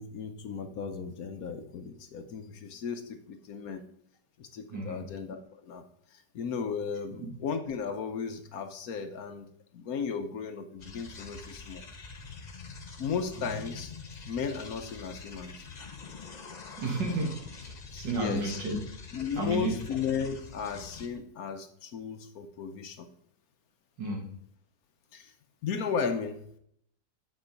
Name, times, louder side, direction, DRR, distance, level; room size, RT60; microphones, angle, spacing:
voice 1, 0.0-3.8 4.4-5.8 6.1-9.5 9.7-11.8 13.0-13.9 14.3-15.6 17.9-18.6 19.1-23.1 25.1-25.3 25.6-26.4, left 6 dB, 65° left, 7 dB, 1.1 m, -35 dB
voice 2, 4.7-5.1 13.4-13.5 16.8-18.8 19.3-19.7 24.0-24.3, right 2 dB, 85° right, 1 dB, 2.6 m, -32 dB
sound 1, 10.8-21.1, left 4 dB, 45° left, 0.5 m, -45 dB
8.4 x 5.4 x 5.2 m, 0.68 s
omnidirectional pair, 1.9 m